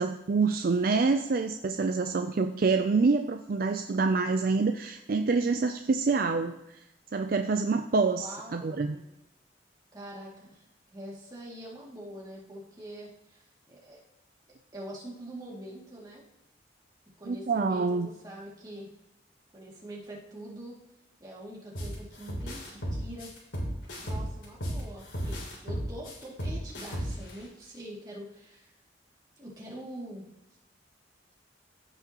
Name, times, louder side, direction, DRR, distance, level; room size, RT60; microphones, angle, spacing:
voice 1, 0.0-6.8 7.1-9.0 17.3-18.1, right 4 dB, 50° right, 7 dB, 0.4 m, -26 dB
voice 2, 8.2-9.1 9.9-14.0 14.7-16.2 17.2-18.9 19.5-20.8 21.2-23.3 24.0-28.7 29.4-30.3, equal, 20° right, -5 dB, 2.4 m, -44 dB
sound 1, 21.7-21.9 22.3-24.8 25.1-27.3, equal, 80° left, 3.2 m, -34 dB
15.0 x 6.0 x 3.0 m, 0.91 s
head